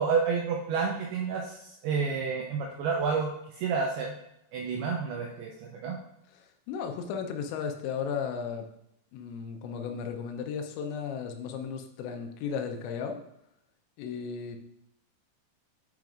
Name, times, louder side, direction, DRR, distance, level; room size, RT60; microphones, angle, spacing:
voice 1, 0.0-4.1 4.5-6.0, right 5 dB, 90° right, 0 dB, 2.3 m, -30 dB
voice 2, 6.7-8.7 9.1-13.2 14.0-14.6, left 6 dB, 80° left, 5 dB, 2.9 m, -35 dB
9.0 x 5.1 x 2.4 m, 0.82 s
omnidirectional pair, 5.3 m